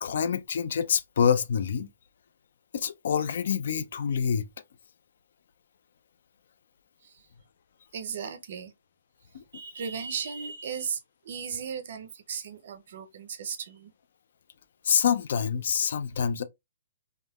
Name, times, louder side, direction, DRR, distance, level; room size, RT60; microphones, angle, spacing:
voice 1, 0.0-1.9 2.7-4.5 9.3-9.4 14.8-16.4, left 7 dB, 60° left, 0.3 m, -26 dB
voice 2, 7.9-8.7 9.5-13.9, right 7 dB, 50° right, 0.5 m, -36 dB
3.4 x 2.1 x 2.2 m
hypercardioid pair, 160°, 0 cm